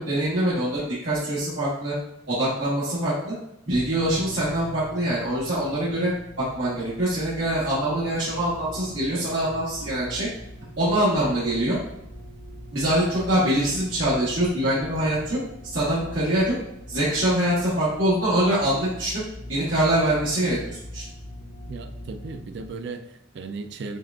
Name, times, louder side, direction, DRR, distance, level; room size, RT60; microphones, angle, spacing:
voice 1, 0.0-1.9 2.3-3.3 3.6-6.1 6.4-10.3 10.8-11.8 12.7-15.4 15.7-16.5 16.9-19.2 19.5-21.0, right 1 dB, 90° right, -9 dB, 1.3 m, -24 dB
sound 1, 3.7-22.7, equal, 40° left, 0.5 m, -42 dB
voice 2, 21.7-24.0, right 4 dB, 65° right, 8 dB, 0.4 m, -36 dB
6.2 x 2.4 x 2.4 m, 0.83 s
head